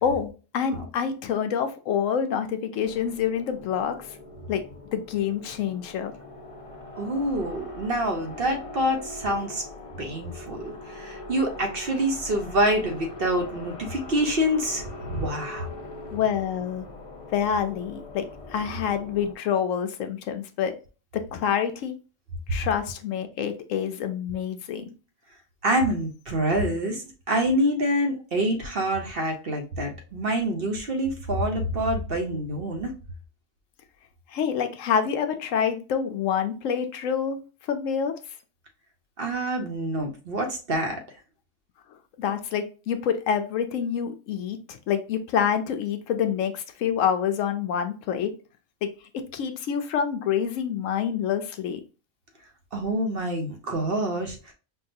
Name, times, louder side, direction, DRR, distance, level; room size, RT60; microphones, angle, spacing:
voice 1, 0.0-3.9 4.5-4.7 4.9-6.1 16.1-16.9 17.3-20.8 21.1-21.9 22.5-24.9 34.3-37.4 37.7-38.1 42.2-48.3 48.8-48.9 49.3-51.8, left 8 dB, 75° left, 8 dB, 0.9 m, -27 dB
sound 1, 2.8-19.3, left 2 dB, 35° left, 0.6 m, -42 dB
voice 2, 7.0-9.6 10.0-15.7 25.6-32.9 39.2-41.0 52.7-54.5, right 1 dB, 50° right, 3 dB, 0.8 m, -26 dB
5.5 x 2.3 x 2.6 m, 0.34 s
omnidirectional pair, 1.4 m